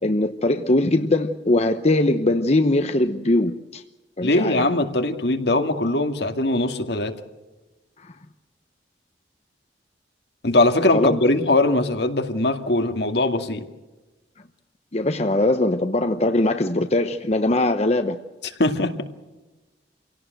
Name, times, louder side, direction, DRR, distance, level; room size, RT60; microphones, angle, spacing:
voice 1, 0.0-3.8 4.2-4.6 8.0-8.1 10.9-11.2 14.9-18.2, left 2 dB, 40° left, 0.9 m, -21 dB
voice 2, 4.2-7.2 10.4-13.6 18.6-19.0, left 2 dB, 70° left, 2.2 m, -21 dB
27.5 x 17.5 x 7.9 m
head